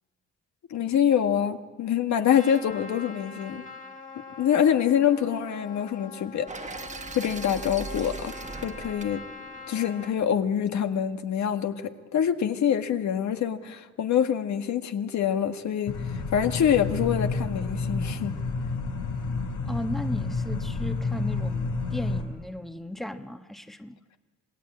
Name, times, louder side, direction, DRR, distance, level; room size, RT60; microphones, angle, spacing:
voice 1, 0.7-3.6 4.2-6.8 7.1-8.3 8.6-9.2 9.7-18.3, left 9 dB, 70° left, 6 dB, 1.7 m, -25 dB
Trumpet, 2.3-10.1, left 4 dB, 25° left, 2.8 m, -43 dB
sound 1, 6.5-10.5, right 3 dB, 25° right, 1.4 m, -40 dB
sound 2, 15.9-22.2, left 3 dB, 85° left, 4.3 m, -30 dB
voice 2, 19.6-24.0, equal, ahead, 8 dB, 1.2 m, -36 dB
27.0 x 19.0 x 8.6 m, 1.4 s
cardioid pair, 90°, 30 cm